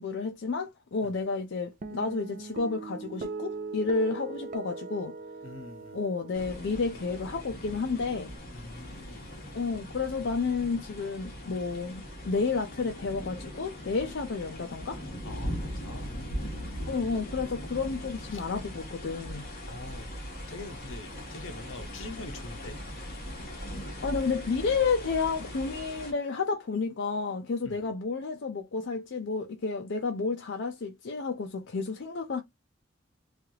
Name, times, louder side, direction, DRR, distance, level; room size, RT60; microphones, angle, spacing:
voice 1, 0.0-5.2 5.9-8.3 9.5-15.0 16.9-19.5 24.0-32.4, left 4 dB, 65° left, 0.5 m, -31 dB
Guitar, 1.8-8.4, right 3 dB, 40° right, 0.4 m, -41 dB
voice 2, 5.4-6.0 8.5-9.5 14.0-14.1 15.2-16.8 18.3-18.4 19.6-20.1 20.4-22.9 27.6-27.9, left 2 dB, 80° left, 0.9 m, -45 dB
sound 1, 6.3-26.1, equal, 50° left, 1.2 m, -40 dB
3.2 x 2.4 x 2.7 m
head